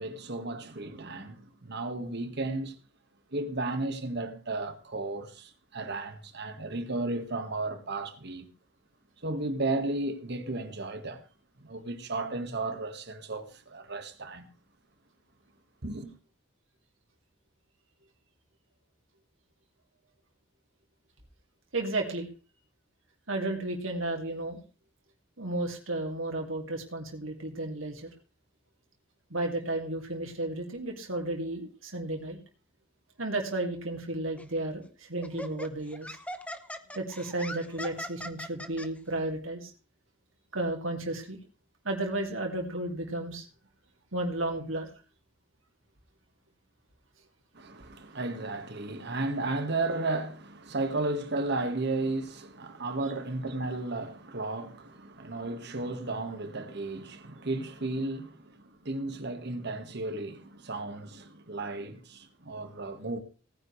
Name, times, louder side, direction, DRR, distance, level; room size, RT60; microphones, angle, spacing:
voice 1, 0.0-2.7 3.3-8.5 9.2-11.2 11.6-14.5 15.8-16.1 47.5-63.2, right 2 dB, 60° right, 1.6 m, -34 dB
voice 2, 21.7-22.3 23.3-24.6 25.4-28.1 29.3-32.4 33.2-36.2 36.9-39.7 40.5-41.4 41.8-43.5 44.1-44.9, right 2 dB, 85° right, 2.4 m, -33 dB
Laughter, 34.4-34.6 35.2-38.9, left 1 dB, 5° left, 0.8 m, -40 dB
18.0 x 9.8 x 3.2 m
head